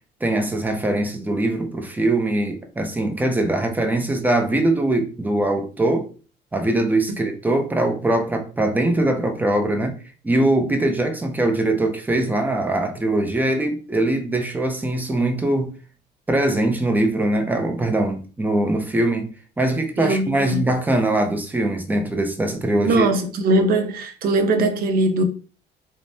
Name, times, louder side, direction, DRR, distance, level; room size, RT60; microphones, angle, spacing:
voice 1, 0.2-6.1 6.5-10.0 10.2-15.7 16.3-19.3 19.6-23.1, right 1 dB, 10° right, 0.5 m, -22 dB
voice 2, 20.0-20.6 22.8-25.2, right 2 dB, 60° right, 0.6 m, -20 dB
3.3 x 2.1 x 2.6 m
cardioid pair, 110°, 17 cm